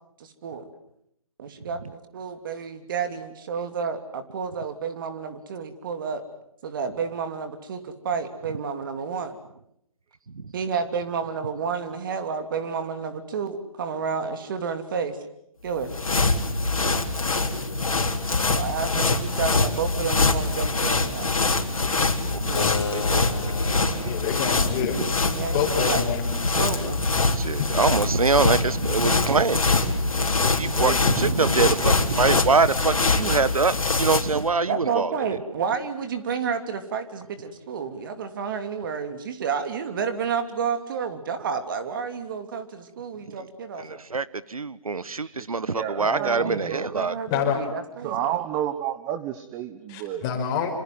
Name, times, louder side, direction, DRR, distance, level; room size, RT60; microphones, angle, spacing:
voice 1, 0.2-0.7 1.4-6.2 6.6-9.4 10.5-15.2 15.6-15.9 18.5-21.3 25.3-26.0 26.6-27.1 34.7-44.0 46.0-48.3, right 6 dB, 35° right, 9 dB, 3.0 m, -30 dB
sound 1, 15.7-34.4, left 3 dB, 75° left, 3.8 m, -24 dB
voice 2, 22.3-24.1 25.0-25.1 27.3-29.7 30.1-35.1 43.3-43.5 43.8-47.1, right 4 dB, 80° right, 17 dB, 1.3 m, -25 dB
Keyboard (musical), 22.5-27.7, left 6 dB, 50° left, 3.1 m, -36 dB
voice 3, 24.0-25.0 25.5-26.2 27.6-27.7 47.3-47.6 49.9-50.7, left 8 dB, 20° left, 4 dB, 5.1 m, -27 dB
voice 4, 30.6-31.0 31.6-31.9 45.2-46.9 48.0-50.2, right 11 dB, 15° right, 11 dB, 1.1 m, -31 dB
27.0 x 26.5 x 7.8 m, 0.76 s
figure-of-eight pair, 150°, 18 cm